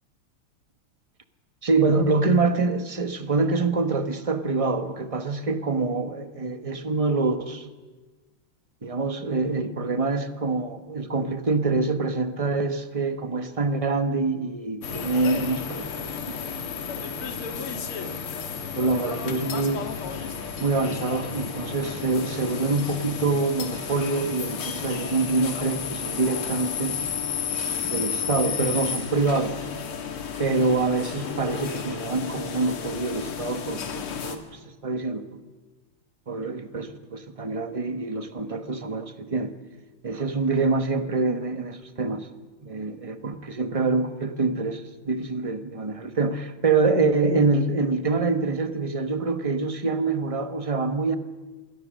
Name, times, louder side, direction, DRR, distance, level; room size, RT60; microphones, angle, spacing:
voice 1, 1.6-7.7 8.8-16.6 18.7-19.8 20.6-27.0 27.8-29.6 30.4-35.4 36.3-39.5 40.0-42.3 42.6-51.2, right 3 dB, 20° right, 9 dB, 0.9 m, -25 dB
sound 1, 14.8-34.4, left 7 dB, 85° left, 2.7 m, -32 dB
27.0 x 21.5 x 6.5 m, 1.3 s
omnidirectional pair, 2.3 m